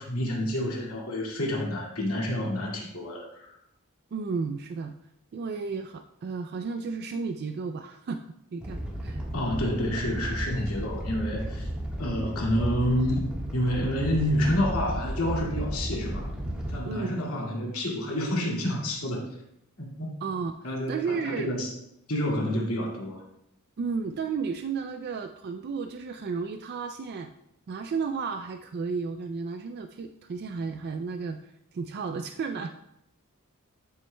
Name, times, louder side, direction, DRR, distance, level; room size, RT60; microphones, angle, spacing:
voice 1, 0.0-3.5 9.3-11.7 12.0-13.3 13.5-16.3 16.7-19.3 19.8-20.2 20.6-21.7 22.1-23.2, left 1 dB, 80° left, -2 dB, 2.1 m, -29 dB
voice 2, 4.1-4.9 5.3-8.2 8.5-9.2 16.8-17.1 20.2-21.6 23.8-27.3 27.7-32.8, right 5 dB, 45° right, 7 dB, 0.3 m, -33 dB
Animal, 8.6-16.8, right 1 dB, 5° right, 1.3 m, -33 dB
12.0 x 6.0 x 2.2 m, 0.79 s
head